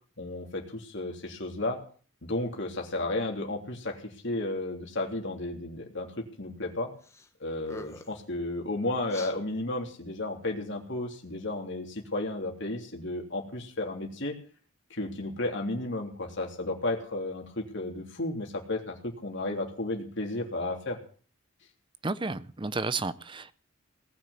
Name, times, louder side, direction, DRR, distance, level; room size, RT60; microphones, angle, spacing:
voice 1, 0.2-1.8 2.2-6.9 7.4-14.3 14.9-21.0, left 2 dB, 60° left, 3.2 m, -33 dB
sound 1, 7.0-7.3 7.6-8.2 9.1-9.3, left 1 dB, 15° left, 1.3 m, -44 dB
voice 2, 22.0-23.5, right 3 dB, 25° right, 0.6 m, -32 dB
18.5 x 6.3 x 9.5 m
head